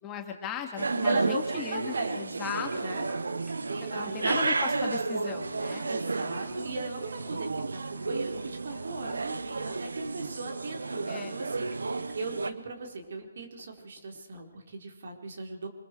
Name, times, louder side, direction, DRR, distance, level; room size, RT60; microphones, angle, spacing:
voice 1, 0.0-2.9 3.9-5.9 11.1-11.4, left 8 dB, 20° left, 3 dB, 2.4 m, -37 dB
sound 1, 0.8-12.5, right 3 dB, 75° right, 1.2 m, -32 dB
voice 2, 1.0-2.2 2.8-3.1 3.7-4.3 5.9-7.8 8.1-15.7, right 3 dB, 60° right, 3 dB, 4.5 m, -38 dB
sound 2, 2.7-14.7, right 1 dB, 10° right, 3.3 m, -57 dB
Wind instrument woodwind instrument, 7.7-13.2, right 4 dB, 30° right, 6.5 m, -56 dB
25.0 x 21.5 x 4.8 m, 0.99 s
figure-of-eight pair, 145°, 0 cm